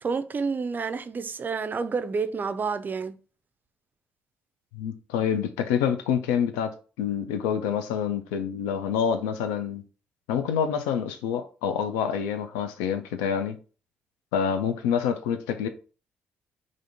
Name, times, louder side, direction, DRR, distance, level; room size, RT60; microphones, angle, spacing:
voice 1, 0.0-3.2, right 5 dB, 35° right, 0.3 m, -29 dB
voice 2, 4.7-6.7 7.0-9.8 10.3-13.6 14.3-15.7, left 8 dB, 85° left, 0.3 m, -27 dB
3.5 x 2.4 x 2.6 m
hypercardioid pair, 50°, 5 cm